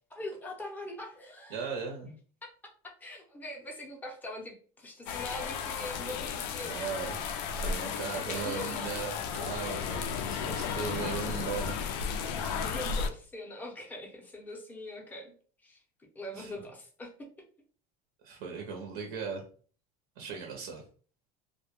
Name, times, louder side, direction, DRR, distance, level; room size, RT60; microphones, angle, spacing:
voice 1, 0.1-1.7 3.0-6.8 8.1-9.0 12.6-15.3 15.6-15.8 16.2-17.3, left 1 dB, 10° left, 0 dB, 0.5 m, -42 dB
voice 2, 1.5-2.1 6.6-7.2 7.5-11.8 16.4-16.7 18.2-19.4 20.2-20.8, right 6 dB, 65° right, 2 dB, 0.5 m, -38 dB
sound 1, 5.1-13.1, left 6 dB, 80° left, 0.4 m, -34 dB
2.1 x 2.0 x 2.9 m, 0.42 s
cardioid pair, 150°, 20 cm